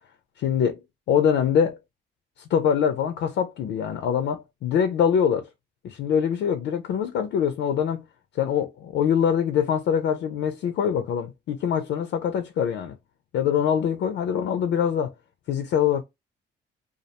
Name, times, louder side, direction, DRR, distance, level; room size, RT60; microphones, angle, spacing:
voice 1, 0.4-0.8 1.1-1.8 2.5-5.4 5.8-8.0 8.3-13.0 13.3-15.1 15.5-16.0, left 8 dB, 70° left, 0.4 m, -24 dB
2.3 x 2.1 x 2.8 m
cardioid pair, 90°, 20 cm